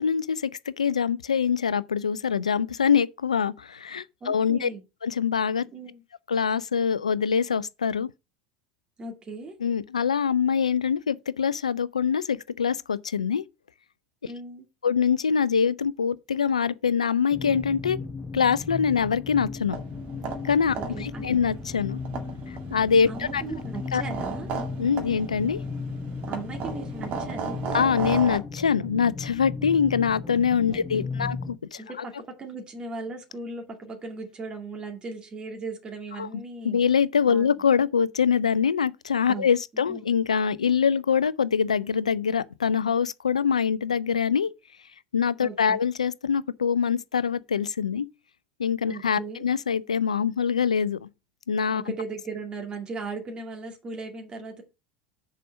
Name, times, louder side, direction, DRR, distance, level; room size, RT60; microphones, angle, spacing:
voice 1, 0.0-4.7 5.0-5.6 6.3-8.1 9.6-13.4 14.8-18.0 18.3-19.8 20.5-22.0 22.7-23.4 23.9-24.0 24.8-25.6 27.7-31.8 36.2-36.3 36.6-44.5 45.1-48.1 48.6-51.1 51.5-51.8, left 7 dB, 80° left, 0.4 m, -24 dB
voice 2, 4.2-4.8 5.7-6.0 9.0-9.6 14.3-14.7 20.7-21.2 23.1-24.5 26.3-27.7 30.7-31.3 31.8-32.1 32.4-36.8 37.3-37.6 39.3-39.5 39.7-40.0 45.4-45.8 48.9-49.5 51.8-54.6, right 3 dB, 25° right, 2.2 m, -37 dB
sound 1, 17.3-31.6, left 4 dB, 15° left, 0.9 m, -36 dB
sound 2, 19.7-28.4, right 5 dB, 45° right, 2.1 m, -36 dB
6.6 x 5.0 x 6.3 m
figure-of-eight pair, 75°, 4 cm